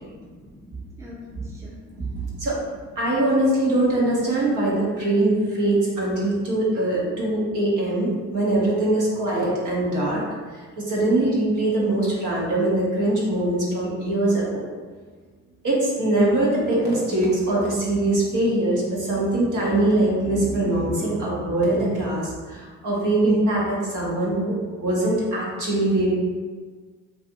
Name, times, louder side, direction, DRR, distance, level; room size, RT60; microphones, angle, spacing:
voice 1, 0.0-2.5 4.4-4.7, left 2 dB, 5° right, -6 dB, 0.7 m, -45 dB
voice 2, 3.0-10.2 10.8-14.7 15.6-26.1, right 1 dB, 50° right, -5 dB, 1.1 m, -22 dB
2.6 x 2.5 x 2.6 m, 1.5 s
hypercardioid pair, 50°, 41 cm